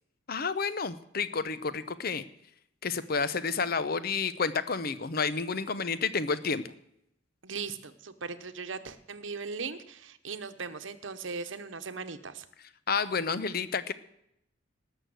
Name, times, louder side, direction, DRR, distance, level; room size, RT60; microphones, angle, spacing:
voice 1, 0.3-2.2 2.8-6.6 12.9-13.9, left 5 dB, 50° left, 14 dB, 0.8 m, -30 dB
voice 2, 7.4-12.5, right 5 dB, 75° right, 10 dB, 1.0 m, -38 dB
18.5 x 6.6 x 7.9 m, 0.77 s
head